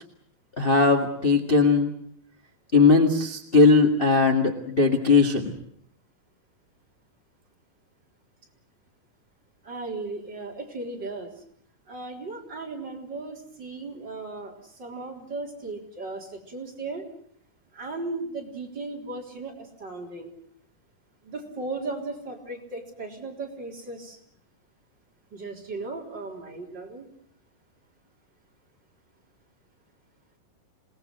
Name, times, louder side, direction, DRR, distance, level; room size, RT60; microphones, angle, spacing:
voice 1, 0.6-1.9 2.7-5.5, left 4 dB, 30° left, 2 dB, 1.0 m, -19 dB
voice 2, 9.6-11.3 11.9-17.1 17.7-20.3 21.2-24.2 25.3-27.1, right 3 dB, 30° right, 0 dB, 4.3 m, -36 dB
27.5 x 19.0 x 7.9 m, 0.64 s
omnidirectional pair, 4.2 m